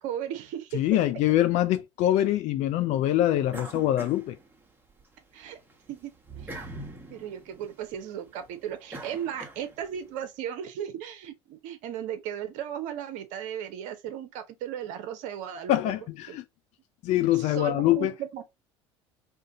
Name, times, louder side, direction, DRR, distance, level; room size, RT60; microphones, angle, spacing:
voice 1, 0.0-0.8 5.3-5.6 5.9-6.6 7.1-15.8 16.3-16.4 17.3-18.4, right 9 dB, 55° right, 0.6 m, -36 dB
voice 2, 0.7-4.4 15.7-16.4 17.0-18.1, left 13 dB, 50° left, 0.4 m, -24 dB
sound 1, 3.5-5.0 5.4-10.0, right 2 dB, 15° right, 1.0 m, -44 dB
2.5 x 2.5 x 3.7 m
hypercardioid pair, 70°, 15 cm